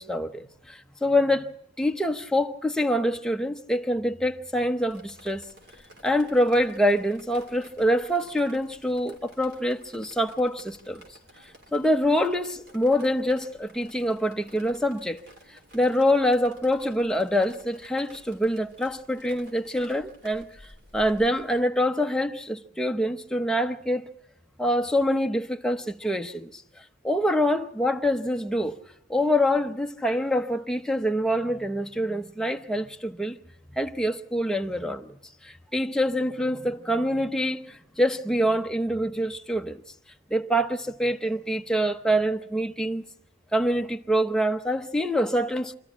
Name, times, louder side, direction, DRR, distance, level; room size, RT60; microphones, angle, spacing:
voice 1, 0.0-1.5 1.8-5.5 6.0-11.0 11.7-15.2 15.5-20.5 20.9-24.1 24.6-26.6 27.0-28.8 29.1-33.4 33.7-35.2 35.4-39.8 40.3-43.0 43.5-45.7, equal, 5° left, 0.8 m, -25 dB
Drip, 4.9-21.6, equal, 55° right, 3.6 m, -52 dB
26.5 x 13.5 x 10.0 m
head